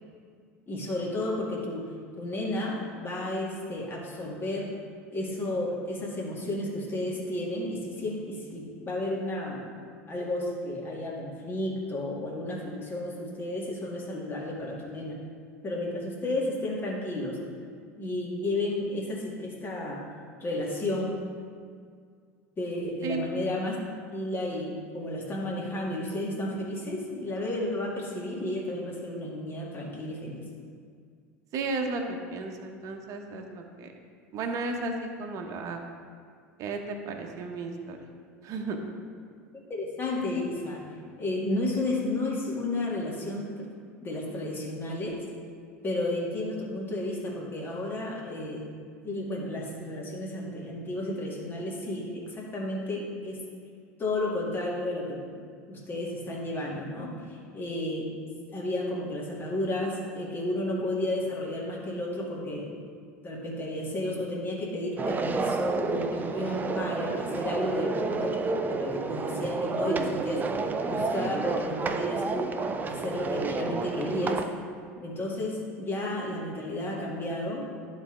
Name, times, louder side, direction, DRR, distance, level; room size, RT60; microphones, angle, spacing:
voice 1, 0.7-1.8 2.2-4.7 5.1-9.7 10.1-15.2 15.6-17.4 18.0-20.0 20.4-21.1 22.6-23.8 24.1-30.4 39.5-40.8 41.2-43.7 44.0-45.2 45.8-48.6 49.0-53.4 54.0-55.2 55.7-58.1 58.5-62.7 63.2-68.4 68.8-70.4 70.9-72.5 72.9-74.4 75.0-77.7, left 1 dB, 25° left, -3 dB, 2.0 m, -32 dB
voice 2, 31.5-33.9 34.3-35.9 36.6-38.1 38.4-38.8, right 3 dB, 45° right, 3 dB, 1.0 m, -34 dB
sound 1, 65.0-74.5, right 4 dB, 25° right, 0.5 m, -30 dB
11.5 x 4.1 x 3.8 m, 2.1 s
hypercardioid pair, 80°, 8 cm